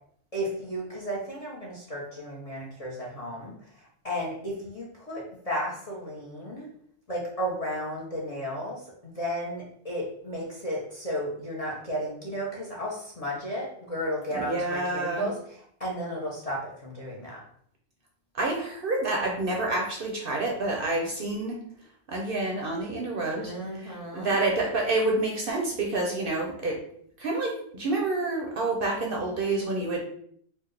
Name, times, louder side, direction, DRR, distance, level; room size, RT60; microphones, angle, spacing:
voice 1, 0.3-6.7 7.1-17.4 23.4-24.3, equal, 35° left, -4 dB, 0.7 m, -34 dB
voice 2, 14.3-15.3 18.3-21.6 22.1-26.8 27.2-30.0, right 2 dB, 55° right, 0 dB, 0.7 m, -28 dB
4.3 x 2.1 x 3.2 m, 0.64 s
omnidirectional pair, 1.3 m